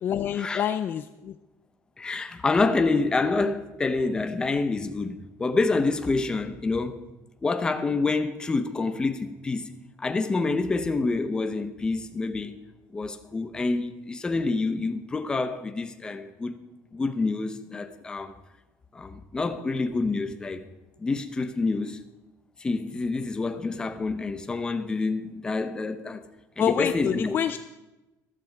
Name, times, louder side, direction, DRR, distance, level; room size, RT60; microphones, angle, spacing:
voice 1, 0.0-1.4 26.6-27.6, left 9 dB, 35° left, 11 dB, 0.4 m, -27 dB
voice 2, 2.0-7.0 7.4-12.6 12.9-16.5 16.9-18.3 18.9-20.6 21.0-22.0 22.6-26.2 26.6-27.4, left 3 dB, 15° left, 9 dB, 0.9 m, -27 dB
14.0 x 13.5 x 4.8 m, 1.0 s
cardioid pair, 170°, 6 cm